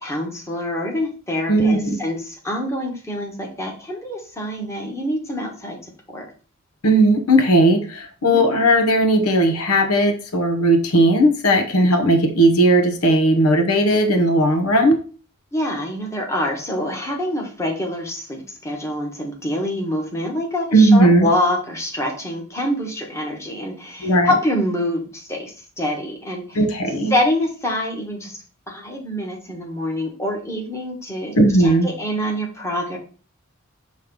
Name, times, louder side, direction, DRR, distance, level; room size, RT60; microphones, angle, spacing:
voice 1, 0.0-5.8 6.1-6.3 8.2-8.4 15.5-26.6 27.1-28.4 28.7-33.0, left 1 dB, 15° left, 0 dB, 1.3 m, -26 dB
voice 2, 1.5-2.0 6.8-15.0 20.7-21.3 24.0-24.3 26.5-27.1 31.4-31.9, right 1 dB, 85° left, 6 dB, 1.1 m, -16 dB
6.5 x 3.2 x 5.3 m, 0.39 s
head